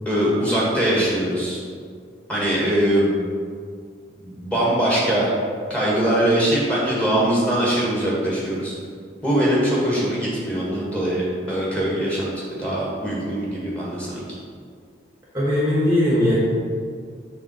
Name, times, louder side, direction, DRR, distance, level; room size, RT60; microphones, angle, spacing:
voice 1, 0.0-1.6 2.3-3.1 4.2-5.3 5.7-8.7 9.2-14.2, right 1 dB, 5° left, -6 dB, 1.7 m, -22 dB
voice 2, 15.3-16.3, left 1 dB, 20° right, -7 dB, 1.2 m, -19 dB
7.1 x 3.5 x 6.0 m, 2.1 s
head